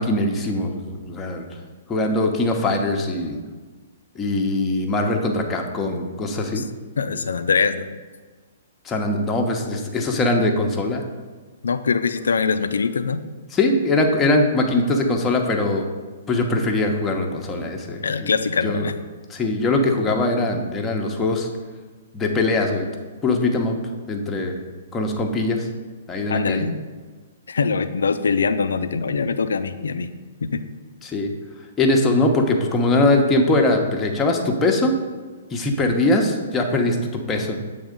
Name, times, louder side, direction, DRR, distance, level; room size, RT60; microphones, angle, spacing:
voice 1, 0.0-1.5 1.9-3.4 4.1-6.6 8.8-11.0 13.5-15.8 16.3-18.3 18.6-18.9 19.3-21.5 22.1-22.9 23.2-23.7 24.1-24.5 24.9-25.7 26.1-26.7 31.0-31.3 31.8-34.9 35.5-37.0 37.3-37.6, left 2 dB, 15° left, 1 dB, 0.9 m, -21 dB
voice 2, 7.0-8.0 11.6-13.2 18.0-18.9 26.3-26.8 27.5-30.1 30.4-30.6, left 5 dB, 75° left, 11 dB, 0.4 m, -23 dB
7.2 x 3.5 x 5.2 m, 1.4 s
figure-of-eight pair, 120°, 0 cm